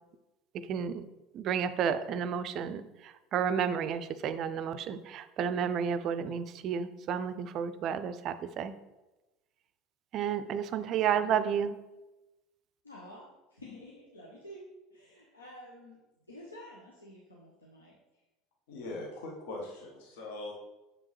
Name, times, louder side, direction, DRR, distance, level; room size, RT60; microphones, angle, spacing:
voice 1, 0.7-1.0 1.3-8.7 10.1-11.8, right 7 dB, 45° right, 13 dB, 0.4 m, -31 dB
voice 2, 10.7-11.5 12.8-16.0 16.3-17.9, left 1 dB, 80° left, -3 dB, 0.9 m, -50 dB
voice 3, 18.7-20.5, left 2 dB, 60° left, -1 dB, 1.1 m, -41 dB
7.0 x 5.3 x 3.1 m, 1.0 s
figure-of-eight pair, 70°, 0 cm